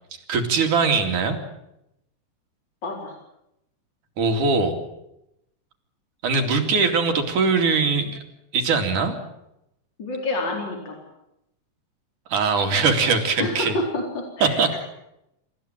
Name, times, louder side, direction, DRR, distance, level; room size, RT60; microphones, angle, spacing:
voice 1, 0.3-1.4 4.2-4.8 6.2-8.2 8.5-9.1 12.3-13.8 14.4-14.7, right 4 dB, 75° right, 5 dB, 4.2 m, -21 dB
voice 2, 2.8-3.2 10.0-11.0 13.4-14.8, left 2 dB, 35° left, 0 dB, 5.0 m, -28 dB
28.0 x 15.5 x 9.0 m, 0.84 s
omnidirectional pair, 3.6 m